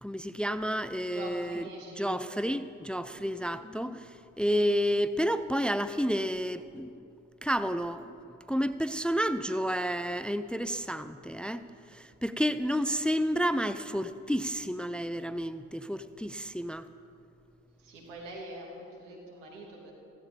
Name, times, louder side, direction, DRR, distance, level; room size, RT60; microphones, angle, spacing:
voice 1, 0.0-1.7 2.0-7.1 7.4-8.1 8.5-16.9, equal, 5° left, 13 dB, 0.6 m, -30 dB
voice 2, 1.0-2.1 3.1-3.5 17.8-19.9, right 1 dB, 90° right, -1 dB, 2.8 m, -44 dB
16.0 x 15.0 x 5.2 m, 2.5 s
hypercardioid pair, 50°, 36 cm